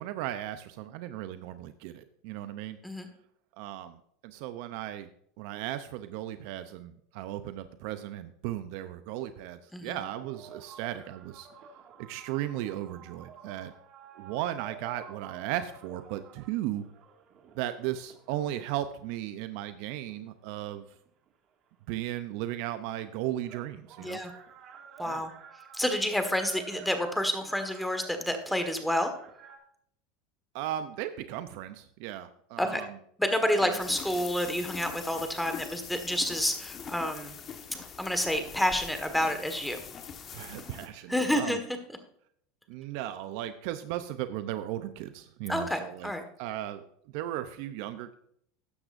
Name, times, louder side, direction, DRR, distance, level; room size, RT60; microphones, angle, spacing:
voice 1, 0.0-2.8 3.6-4.0 4.2-5.1 5.4-11.5 12.1-13.7 14.2-16.8 17.6-20.8 21.9-24.2 25.0-25.2 30.5-32.9 33.6-33.7 40.3-41.6 42.7-46.1 46.4-46.8 47.1-48.1, right 13 dB, 65° right, 11 dB, 0.6 m, -36 dB
sound 1, 10.1-18.9 19.6-21.3 22.5-22.6 22.8-29.6, right 7 dB, 45° right, 2.0 m, -51 dB
voice 2, 24.0-24.3 25.0-25.3 25.7-29.1 32.6-32.9 33.2-37.3 38.0-39.8 41.1-41.6 45.5-46.2, equal, 5° left, 7 dB, 1.6 m, -29 dB
sound 2, 33.8-40.9, left 7 dB, 35° left, 1.3 m, -43 dB
13.0 x 9.8 x 2.6 m, 0.67 s
supercardioid pair, 115°, 0 cm